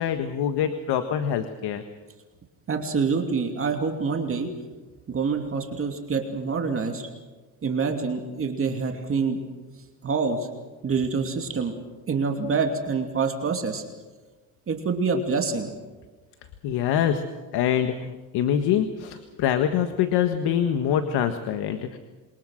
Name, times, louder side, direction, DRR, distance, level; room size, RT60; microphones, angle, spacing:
voice 1, 0.0-1.8 16.6-17.2 17.5-22.0, left 9 dB, 75° left, 8 dB, 1.6 m, -25 dB
voice 2, 2.7-4.5 5.1-7.1 7.6-9.4 10.0-10.5 10.8-11.7 12.1-13.8 14.7-15.7, right 5 dB, 35° right, 3 dB, 2.7 m, -26 dB
27.5 x 23.5 x 6.5 m, 1.3 s
cardioid pair, 130°, 40 cm